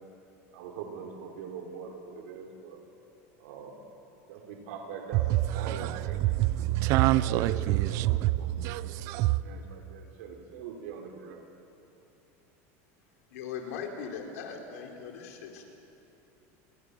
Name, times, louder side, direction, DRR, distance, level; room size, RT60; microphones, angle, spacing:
voice 1, 0.5-2.8 3.4-3.8 4.3-6.2 6.6-7.6 8.3-11.4, right 6 dB, 75° right, 4.5 m, -42 dB
voice 2, 5.5-9.4, right 16 dB, 40° right, 0.7 m, -26 dB
voice 3, 13.3-15.7, left 6 dB, 90° left, 4.4 m, -39 dB
29.5 x 23.5 x 7.1 m
supercardioid pair, 175°, 8 cm